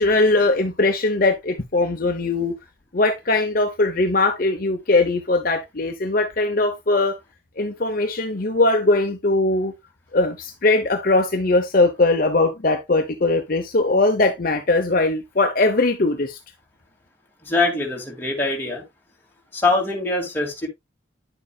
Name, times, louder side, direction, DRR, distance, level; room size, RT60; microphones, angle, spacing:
voice 1, 0.0-2.5 2.9-7.2 7.6-9.7 10.1-16.4, left 2 dB, 45° left, 0.8 m, -20 dB
voice 2, 17.4-18.8 19.5-20.7, left 2 dB, 10° left, 2.4 m, -23 dB
9.9 x 7.1 x 2.4 m
head